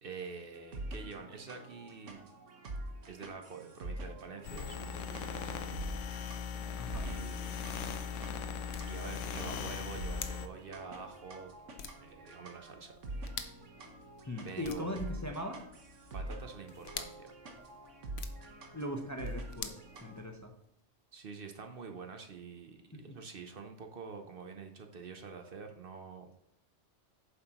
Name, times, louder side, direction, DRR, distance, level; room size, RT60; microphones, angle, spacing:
voice 1, 0.0-2.2 3.1-5.5 7.0-7.6 8.9-11.5 12.0-13.0 14.4-15.0 16.1-17.3 21.1-26.3, right 5 dB, 55° right, 5 dB, 0.9 m, -46 dB
sound 1, 0.5-20.2, right 1 dB, 85° right, 1.5 m, -46 dB
sound 2, 4.4-10.5, left 7 dB, 90° left, 1.1 m, -39 dB
sound 3, 7.9-20.7, left 7 dB, 65° left, 1.0 m, -50 dB
voice 2, 14.3-15.6 18.7-20.5 22.9-23.2, left 1 dB, 15° left, 3 dB, 0.7 m, -40 dB
9.1 x 7.4 x 3.0 m, 0.75 s
omnidirectional pair, 1.2 m